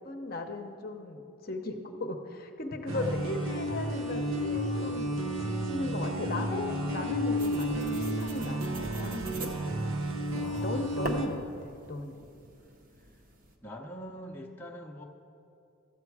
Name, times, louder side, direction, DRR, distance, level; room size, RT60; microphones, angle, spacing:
voice 1, 0.0-5.3 5.6-9.5 10.3-12.2, left 2 dB, 45° left, 4 dB, 0.7 m, -37 dB
voice 2, 2.9-3.2 8.8-9.8 10.3-11.0 13.6-15.0, equal, 10° left, -1 dB, 0.7 m, -45 dB
sound 1, 2.9-11.3, equal, 75° right, 0.8 m, -32 dB
sound 2, 7.4-13.6, right 1 dB, 40° right, 0.9 m, -44 dB
13.5 x 8.2 x 4.8 m, 2.6 s
head